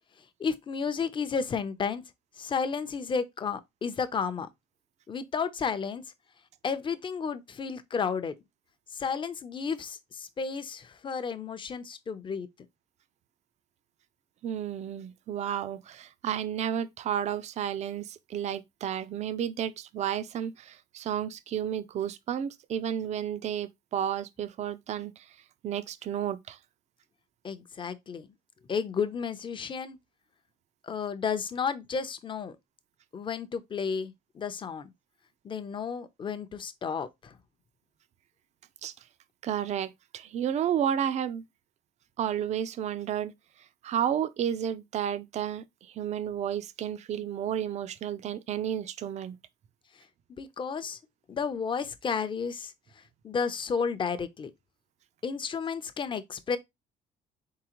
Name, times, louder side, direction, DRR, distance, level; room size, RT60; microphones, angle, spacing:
voice 1, 0.4-2.0 2.4-4.5 5.1-6.0 6.6-8.3 8.9-12.5 27.4-28.3 28.7-30.0 30.8-32.6 33.1-34.9 35.4-37.4 50.4-51.0 51.3-54.5 55.2-56.6, left 6 dB, 30° left, 0.6 m, -32 dB
voice 2, 14.4-25.3 25.6-26.6 38.8-38.9 39.4-41.4 42.2-43.3 43.8-49.4, right 9 dB, 40° right, 0.4 m, -32 dB
4.1 x 3.7 x 2.9 m
cardioid pair, 110°, 17 cm